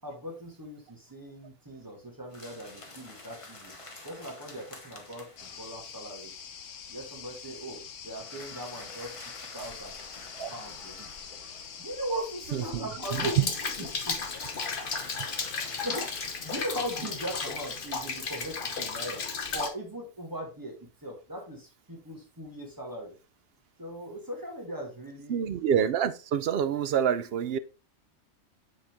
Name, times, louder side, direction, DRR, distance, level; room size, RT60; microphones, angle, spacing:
voice 1, 0.0-3.7 4.0-6.4 6.9-10.0 10.5-11.1 11.8-14.2 15.6-16.1 16.4-19.2 19.5-23.1 23.8-25.5, right 1 dB, 15° right, 2.1 m, -39 dB
sound 1, 2.3-5.9 8.1-12.0 14.1-18.1, left 2 dB, 25° left, 1.2 m, -48 dB
sound 2, 5.4-14.3, left 7 dB, 85° left, 1.2 m, -45 dB
voice 2, 12.5-12.8 25.3-27.6, right 8 dB, 60° right, 0.8 m, -27 dB
Rain, 13.0-19.7, left 4 dB, 50° left, 1.1 m, -34 dB
7.7 x 4.3 x 3.5 m
omnidirectional pair, 1.3 m